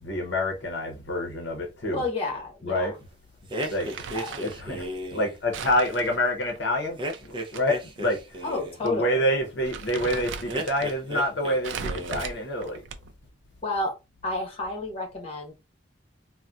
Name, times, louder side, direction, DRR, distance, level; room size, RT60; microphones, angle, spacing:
voice 1, 0.0-2.0 2.6-2.9 3.7-4.1 4.4-8.4 8.8-12.8, left 1 dB, 65° left, 0.7 m, -27 dB
voice 2, 1.9-2.9 4.1-4.4 8.4-9.2 13.6-14.0 14.2-15.5, left 2 dB, 30° left, 1.0 m, -31 dB
sound 1, 3.5-5.3 7.0-8.8 10.5-11.6 11.8-12.4, right 1 dB, 25° right, 0.5 m, -34 dB
Crumpling crinkling, 3.6-4.6 5.5-7.6 8.0-8.1 8.9-9.0 9.4-10.9 11.6-13.2, right 5 dB, 80° right, 0.4 m, -38 dB
3.9 x 2.1 x 2.3 m
head